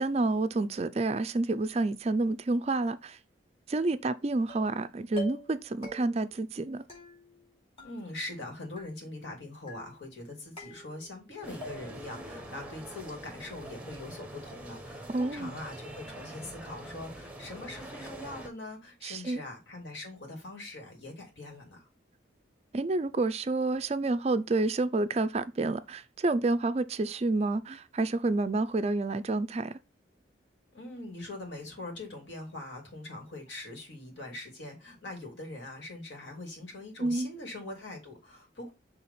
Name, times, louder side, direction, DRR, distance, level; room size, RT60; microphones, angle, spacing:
voice 1, 0.0-3.2 3.7-6.8 15.1-15.5 19.0-19.4 22.7-29.8 37.0-37.3, right 2 dB, 35° right, 0.4 m, -29 dB
sound 1, 4.5-4.8 5.2-5.6 5.8-6.3 6.9-7.5 7.8-8.4 8.8-9.3 9.7-10.2 10.6-11.3 11.6-12.1, equal, 30° left, 2.8 m, -46 dB
voice 2, 7.8-21.9 30.7-38.7, left 2 dB, 70° left, 2.6 m, -42 dB
sound 2, 11.4-18.5, right 1 dB, 5° right, 0.8 m, -44 dB
6.0 x 3.4 x 5.5 m
head